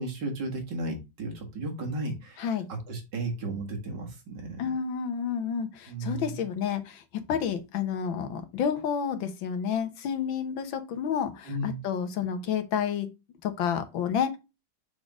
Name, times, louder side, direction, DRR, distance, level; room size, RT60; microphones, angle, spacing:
voice 1, 0.0-4.6 5.9-6.4 11.5-11.8, right 2 dB, 65° right, 2.5 m, -34 dB
voice 2, 4.6-7.0 7.3-13.1 13.4-14.4, left 7 dB, 85° left, 1.8 m, -30 dB
6.6 x 4.2 x 3.6 m
omnidirectional pair, 2.0 m